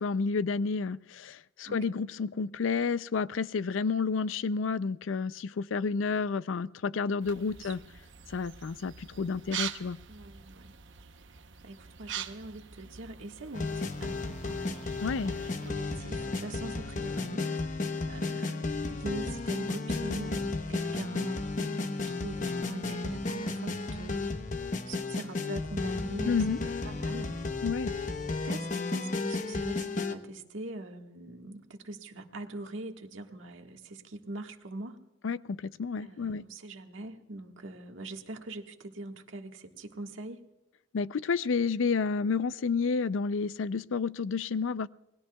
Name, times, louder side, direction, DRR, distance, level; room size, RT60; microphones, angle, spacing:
voice 1, 0.0-7.8 8.3-10.0 15.0-15.3 26.3-26.6 27.6-27.9 35.2-36.5 40.9-44.9, left 5 dB, 85° left, 17 dB, 0.4 m, -30 dB
voice 2, 6.9-7.7 10.1-10.7 11.2-15.4 15.6-24.3 24.6-26.4 26.8-27.4 28.0-35.0 36.0-40.4, right 2 dB, 85° right, 4 dB, 1.6 m, -43 dB
sound 1, 7.2-15.7, right 8 dB, 70° right, 0.9 m, -44 dB
sound 2, 13.5-30.2, left 3 dB, 40° left, 0.9 m, -33 dB
28.0 x 20.5 x 2.3 m, 0.93 s
head